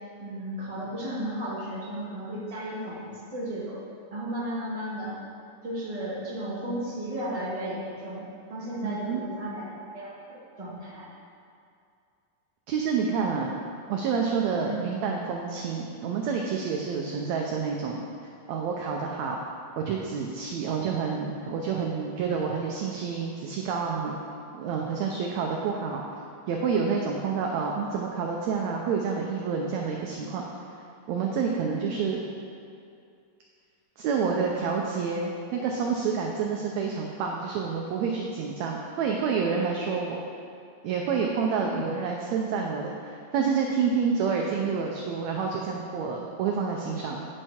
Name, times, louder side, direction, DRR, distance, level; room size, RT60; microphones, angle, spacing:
voice 1, 0.2-3.8 4.1-5.1 5.6-9.7 9.9-11.1 14.6-14.8 31.7-31.9 41.6-41.8, right 1 dB, 15° right, -8 dB, 1.5 m, -34 dB
voice 2, 8.8-9.2 12.7-13.5 13.9-18.0 18.5-19.4 19.8-24.2 24.5-26.0 26.5-30.4 31.1-32.2 34.0-40.2 40.8-47.3, right 5 dB, 80° right, 0 dB, 1.6 m, -28 dB
8.9 x 6.4 x 4.3 m, 2.4 s
omnidirectional pair, 3.8 m